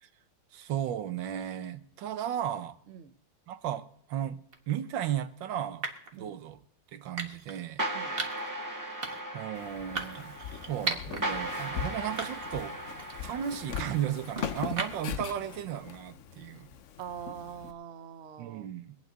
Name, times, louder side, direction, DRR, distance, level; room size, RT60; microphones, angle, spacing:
voice 1, 0.5-2.8 3.5-4.4 4.7-6.6 6.9-7.9 9.3-10.4 10.6-12.7 13.2-16.7 18.4-19.0, right 10 dB, 75° right, 1.5 m, -35 dB
sound 1, 4.5-4.8 5.8-6.2 7.2-7.6 8.2-8.5 9.0-9.4 10.0-11.2 11.6-11.7 12.2-12.6 13.0-15.2, right 3 dB, 35° right, 1.4 m, -37 dB
sound 2, 7.8-14.6, right 1 dB, 10° right, 1.2 m, -38 dB
Walk footsteps, 9.5-17.7, left 8 dB, 65° left, 0.8 m, -41 dB
voice 2, 17.0-18.7, right 8 dB, 55° right, 0.7 m, -43 dB
24.0 x 9.0 x 4.0 m
omnidirectional pair, 2.0 m